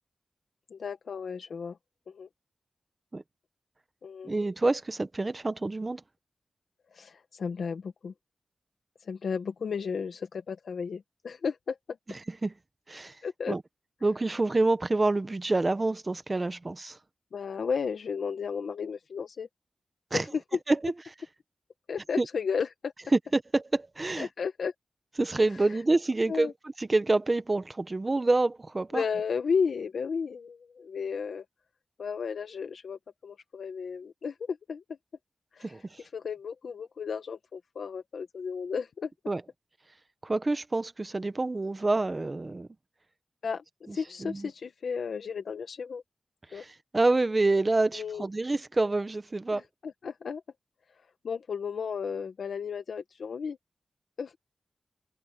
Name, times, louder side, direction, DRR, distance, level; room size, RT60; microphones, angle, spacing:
voice 1, 0.7-1.8 2.1-2.3 4.0-4.3 6.9-8.1 9.0-12.0 13.2-13.6 17.3-19.5 20.1-20.4 21.9-22.9 24.2-24.7 26.3-26.5 28.9-31.5 32.0-34.8 35.5-35.8 36.1-39.1 43.4-46.0 46.5-46.6 47.9-48.2 49.5-50.4 51.2-53.6 54.2-54.4, left 6 dB, 85° left, 1.1 m, -33 dB
voice 2, 4.2-6.0 12.4-12.5 12.9-13.2 13.5-13.6 14.0-17.0 20.1-20.2 20.7-20.9 22.2-22.3 23.3-24.3 25.2-26.5 26.8-29.0 35.6-36.0 39.3-39.4 40.2-42.7 43.9-44.5 46.5-49.6, right 2 dB, 30° right, 1.0 m, -27 dB
wide cardioid pair, 115°, 0 cm